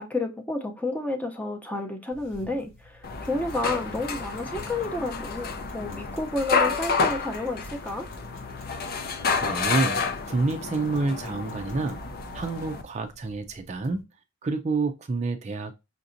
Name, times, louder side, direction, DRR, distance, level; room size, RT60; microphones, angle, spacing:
voice 1, 0.0-8.1, left 2 dB, 10° left, 0.6 m, -31 dB
sound 1, 2.1-14.0, left 1 dB, 80° left, 2.0 m, -51 dB
sound 2, 3.0-12.8, left 5 dB, 50° left, 0.5 m, -30 dB
voice 2, 9.4-10.0 10.3-12.0 12.3-14.1 14.4-15.7, right 3 dB, 35° right, 0.4 m, -28 dB
5.8 x 2.7 x 2.6 m
head